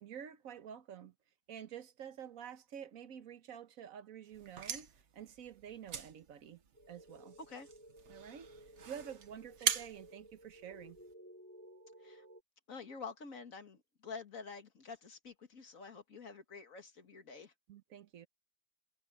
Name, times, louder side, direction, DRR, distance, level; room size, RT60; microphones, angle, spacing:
voice 1, 0.0-1.1 1.5-6.6 6.9-7.4 8.1-8.5 8.9-11.0 17.7-18.3, right 8 dB, 85° right, 1.4 m, -49 dB
sound 1, 4.3-11.1, right 7 dB, 60° right, 1.3 m, -42 dB
sound 2, 6.7-12.4, right 1 dB, 10° left, 2.6 m, -57 dB
voice 2, 12.7-17.5, left 5 dB, 75° left, 2.5 m, -48 dB
omnidirectional pair, 1.4 m